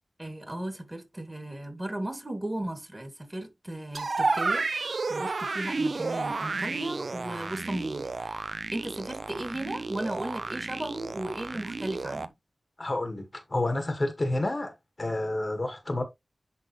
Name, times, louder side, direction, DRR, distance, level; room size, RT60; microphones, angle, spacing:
voice 1, 0.2-12.3, right 1 dB, 15° right, 2.4 m, -36 dB
sound 1, 3.9-12.3, right 3 dB, 70° right, 0.7 m, -32 dB
voice 2, 12.8-14.7 15.0-16.0, left 2 dB, 40° left, 1.7 m, -29 dB
10.5 x 4.0 x 3.1 m
wide cardioid pair, 80°, 0 cm